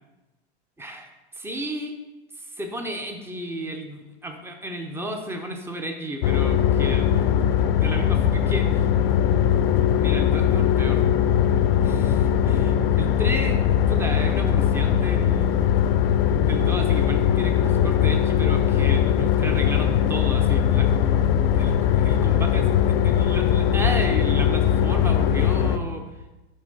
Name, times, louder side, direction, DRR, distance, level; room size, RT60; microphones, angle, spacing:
voice 1, 0.8-1.1 1.3-2.0 2.4-7.1 7.7-8.9 10.0-11.2 11.8-13.6 13.9-15.6 16.4-21.1 21.5-26.0, right 1 dB, 5° right, 4 dB, 0.5 m, -33 dB
sound 1, 6.2-25.8, left 9 dB, 55° left, 0.5 m, -20 dB
6.2 x 3.1 x 5.1 m, 1.1 s
hypercardioid pair, 110°, 33 cm